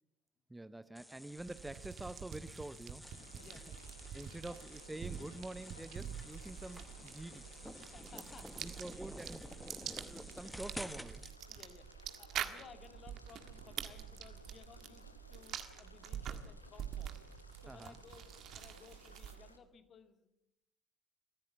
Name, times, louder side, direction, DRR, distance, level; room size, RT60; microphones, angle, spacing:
voice 1, 0.5-3.0 3.3-3.4 3.7-3.8 4.1-7.5 8.6-9.5 9.8-11.2 17.7-18.0, right 2 dB, 10° right, 15 dB, 0.8 m, -47 dB
sound 1, 0.9-11.3, left 1 dB, 5° left, 1.5 m, -51 dB
sound 2, 1.4-19.6, right 9 dB, 50° right, 1.7 m, -47 dB
sound 3, 3.1-19.6, left 2 dB, 85° left, 1.1 m, -61 dB
voice 2, 3.4-3.8 4.5-4.6 7.9-9.1 9.3-9.5 10.5-10.6 11.5-11.9 12.2-17.3 17.6-18.3 18.5-20.3, left 6 dB, 45° left, 8 dB, 2.2 m, -59 dB
23.0 x 15.5 x 7.3 m, 0.84 s
figure-of-eight pair, 50°, 0 cm